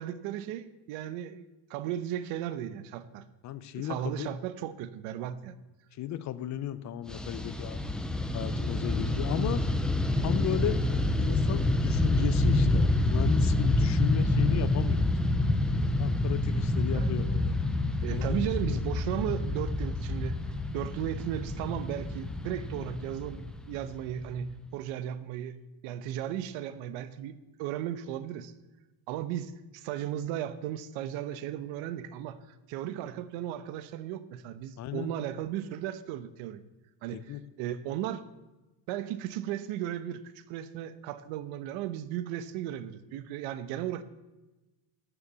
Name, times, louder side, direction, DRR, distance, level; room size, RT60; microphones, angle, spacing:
voice 1, 0.0-3.2 3.8-5.5 16.9-17.1 18.0-20.4 20.7-25.6 25.8-28.5 29.1-36.6 37.0-38.2 38.9-44.0, right 11 dB, 65° right, 13 dB, 1.1 m, -36 dB
voice 2, 3.4-4.3 6.0-7.8 8.3-9.6 10.2-10.8 11.2-15.1 16.0-17.5 18.1-18.8 34.8-35.1 37.1-37.4, left 11 dB, 35° left, 14 dB, 0.6 m, -34 dB
Fixed-wing aircraft airplane, 7.1-24.5, left 2 dB, ahead, 0.3 m, -28 dB
12.5 x 7.2 x 8.3 m, 1.1 s
cardioid pair, 150°, 50 cm